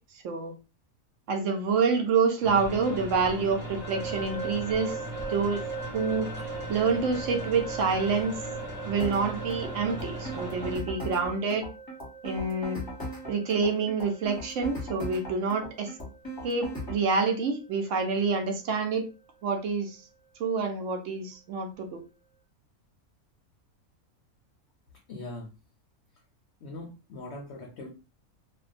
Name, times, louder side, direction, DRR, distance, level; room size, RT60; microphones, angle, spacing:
voice 1, 1.3-5.0 5.3-5.6 5.9-6.3 6.7-8.4 8.8-11.6 12.2-12.8 13.3-15.9 16.4-19.1 19.4-20.0 20.4-22.0, right 4 dB, 65° right, 3 dB, 0.9 m, -27 dB
sound 1, 2.4-10.8, right 1 dB, 15° right, 0.9 m, -38 dB
sound 2, 3.8-18.6, right 5 dB, 35° right, 0.5 m, -42 dB
sound 3, 9.0-17.0, equal, 20° left, 0.6 m, -38 dB
voice 2, 25.1-25.6 26.6-27.9, left 2 dB, 65° left, 2 dB, 0.7 m, -41 dB
2.5 x 2.2 x 2.4 m, 0.30 s
omnidirectional pair, 1.5 m